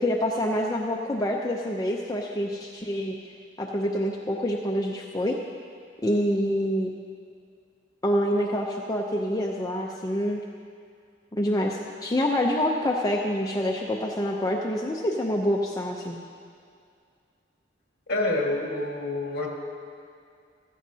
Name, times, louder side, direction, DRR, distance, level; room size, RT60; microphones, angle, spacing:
voice 1, 0.0-3.2 3.6-5.4 6.0-6.9 8.0-10.4 11.3-16.2, equal, 20° left, -1 dB, 0.5 m, -26 dB
voice 2, 18.1-19.5, left 2 dB, 55° left, -1 dB, 1.8 m, -27 dB
15.5 x 13.0 x 2.8 m, 2.3 s
head